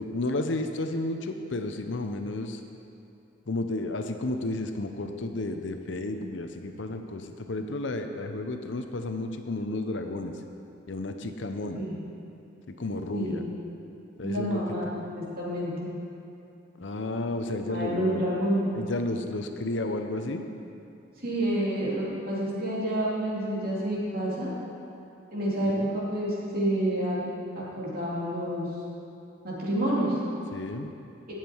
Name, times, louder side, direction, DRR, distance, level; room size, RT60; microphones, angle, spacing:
voice 1, 0.0-2.6 3.5-10.3 10.9-11.8 12.7-13.4 14.2-14.6 16.8-18.2 18.7-20.4 25.6-25.9 30.5-30.9, left 2 dB, 70° left, 6 dB, 0.8 m, -32 dB
voice 2, 14.2-14.9 15.1-15.9 17.7-18.7 21.2-24.5 25.3-25.7 26.1-27.2 27.5-28.7 29.4-30.2, right 1 dB, 50° right, -7 dB, 3.2 m, -28 dB
18.0 x 7.4 x 4.6 m, 2.7 s
head